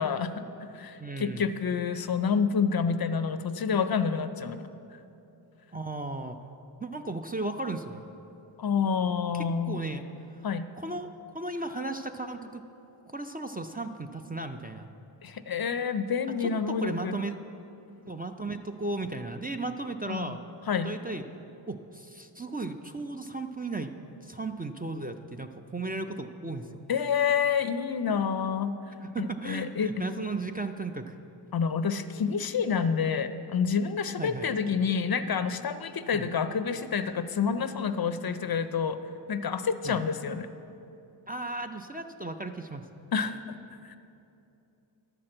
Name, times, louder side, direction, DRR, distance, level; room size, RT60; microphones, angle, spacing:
voice 1, 0.0-4.7 8.6-9.9 10.4-10.7 15.2-17.2 20.1-20.4 20.7-21.0 26.9-28.8 29.2-29.9 31.5-39.0 39.3-40.5 43.1-43.6 43.8-44.0, left 6 dB, 50° left, 11 dB, 0.5 m, -28 dB
voice 2, 1.0-1.4 5.7-6.4 6.8-8.1 9.3-10.0 10.3-10.4 10.7-11.1 11.3-12.6 13.1-14.9 16.4-17.4 18.1-20.4 20.8-21.2 21.7-26.8 29.0-31.2 34.2-34.5 36.1-36.3 39.8-40.0 41.3-42.9, right 2 dB, 20° right, 6 dB, 0.4 m, -35 dB
11.0 x 5.9 x 7.7 m, 2.9 s
wide cardioid pair, 90°, 46 cm